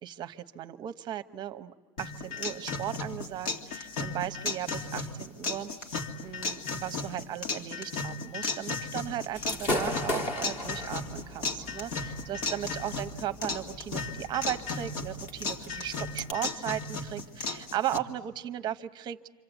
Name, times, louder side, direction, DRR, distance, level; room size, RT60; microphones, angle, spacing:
voice 1, 0.0-6.0 6.2-19.2, right 11 dB, 25° right, 10 dB, 0.8 m, -36 dB
sound 1, 2.0-18.0, left 3 dB, 85° left, 2.5 m, -35 dB
Gunshot gunfire / Fireworks, 9.3-16.3, left 1 dB, 35° left, 2.2 m, -37 dB
28.0 x 26.0 x 8.1 m, 1.4 s
supercardioid pair, 170°, 17 cm